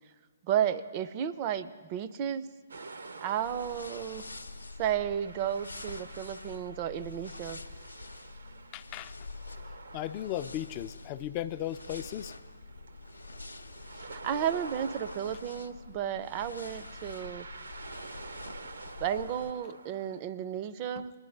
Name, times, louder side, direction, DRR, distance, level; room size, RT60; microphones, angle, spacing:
voice 1, 0.5-2.5 3.2-4.2 4.8-7.6 14.1-17.5 19.0-21.1, right 9 dB, 30° right, 12 dB, 0.5 m, -33 dB
sound 1, 2.7-20.2, right 3 dB, 70° right, 0.7 m, -48 dB
sound 2, 3.4-19.5, left 3 dB, 90° left, 0.6 m, -46 dB
voice 2, 8.7-9.1 9.9-12.4 21.0-21.1, left 12 dB, 30° left, 13 dB, 0.4 m, -36 dB
21.5 x 10.5 x 3.3 m, 1.4 s
figure-of-eight pair, 130°, 0 cm